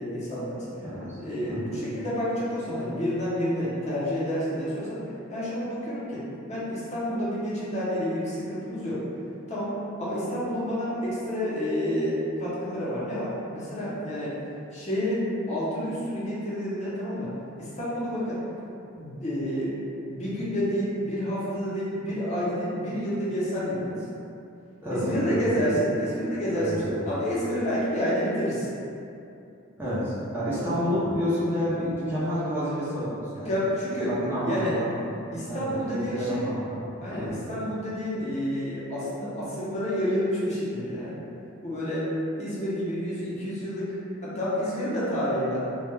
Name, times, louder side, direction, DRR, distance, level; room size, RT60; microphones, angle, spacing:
voice 1, 0.0-0.7 1.2-9.0 9.5-9.7 10.0-14.3 14.7-17.3 17.6-18.4 18.9-19.7 20.1-24.0 24.9-28.7 30.6-30.7 33.4-34.1 34.4-34.8 35.3-36.5 37.0-41.2 41.6-42.1 42.4-44.0 44.2-45.6, equal, 35° left, -9 dB, 0.6 m, -29 dB
voice 2, 0.8-1.2 1.5-1.7 24.8-25.6 26.5-27.0 29.8-33.5 34.0-34.9 35.5-36.8 37.1-37.4, equal, 10° right, -11 dB, 0.4 m, -29 dB
2.2 x 2.1 x 3.0 m, 2.7 s
head